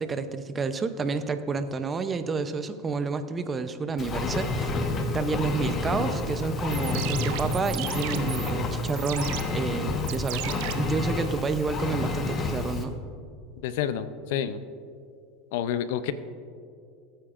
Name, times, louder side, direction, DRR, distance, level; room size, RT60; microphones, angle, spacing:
voice 1, 0.0-4.7 5.1-12.9, right 4 dB, 25° right, 10 dB, 0.6 m, -30 dB
Engine, 4.0-12.8, left 3 dB, 30° left, 1.2 m, -29 dB
sound 1, 6.6-11.6, right 16 dB, 70° right, 0.5 m, -37 dB
voice 2, 13.6-14.6 15.5-16.1, left 9 dB, 75° left, 13 dB, 0.6 m, -29 dB
20.0 x 8.9 x 2.5 m, 2.3 s
supercardioid pair, 115°, 0 cm